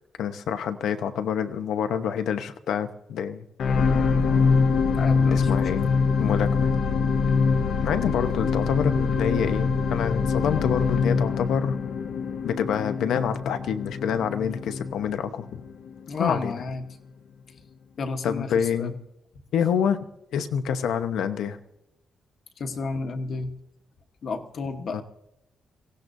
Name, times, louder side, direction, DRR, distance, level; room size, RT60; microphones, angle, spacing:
voice 1, 0.2-3.5 5.2-5.9 6.2-6.7 7.8-11.8 12.4-15.6 16.2-16.5 18.2-18.9 19.5-20.0 20.3-21.6 24.9-25.0, left 8 dB, 90° left, 9 dB, 0.9 m, -27 dB
sound 1, 3.6-16.0 16.6-16.7, left 5 dB, 60° left, 0.7 m, -24 dB
voice 2, 4.9-5.7 16.1-16.8 18.0-18.9 22.6-23.5 24.2-25.0, left 4 dB, 45° left, 6 dB, 1.1 m, -31 dB
24.0 x 17.0 x 2.7 m, 0.85 s
wide cardioid pair, 170°, 0 cm